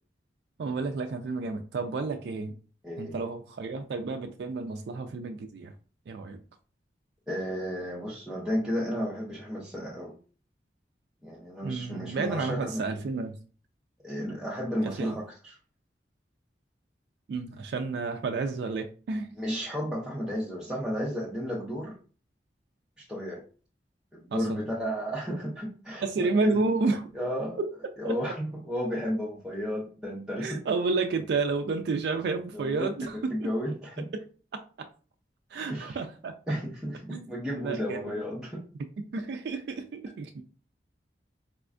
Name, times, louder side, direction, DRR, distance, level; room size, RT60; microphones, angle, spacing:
voice 1, 0.6-2.5 3.0-5.7 6.1-6.4 11.6-13.4 14.8-15.2 17.3-19.3 24.3-24.6 26.0-27.1 27.6-27.7 28.0-28.1 30.4-33.5 34.1-34.2 34.5-34.6 35.5-36.3 37.1-37.3 37.5-38.2 39.0-40.4, right 3 dB, 65° right, 0.3 m, -31 dB
voice 2, 2.8-3.2 7.3-10.2 11.2-12.8 14.0-15.6 19.4-22.0 23.1-23.4 24.1-26.6 27.1-27.6 28.0-30.6 32.5-34.1 35.7-36.0 36.5-38.7, equal, 5° right, 0.6 m, -33 dB
4.1 x 2.2 x 2.4 m
head